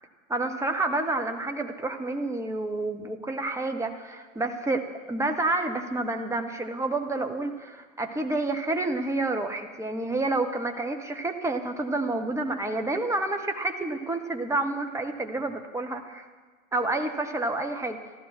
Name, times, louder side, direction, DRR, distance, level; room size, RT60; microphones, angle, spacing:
voice 1, 0.3-16.3 16.7-18.0, right 2 dB, 5° right, 5 dB, 1.1 m, -29 dB
14.5 x 13.0 x 6.1 m, 1.4 s
figure-of-eight pair, 95°, 40 cm